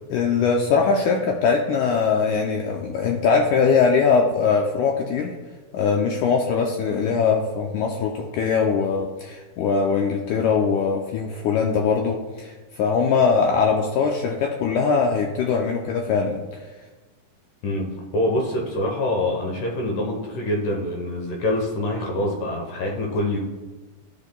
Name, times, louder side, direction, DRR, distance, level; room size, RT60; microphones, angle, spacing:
voice 1, 0.1-5.3 5.7-16.6, left 5 dB, 85° left, 1 dB, 1.8 m, -21 dB
voice 2, 18.1-23.4, left 1 dB, 70° left, 0 dB, 2.2 m, -25 dB
14.0 x 5.8 x 2.2 m, 1.2 s
omnidirectional pair, 4.2 m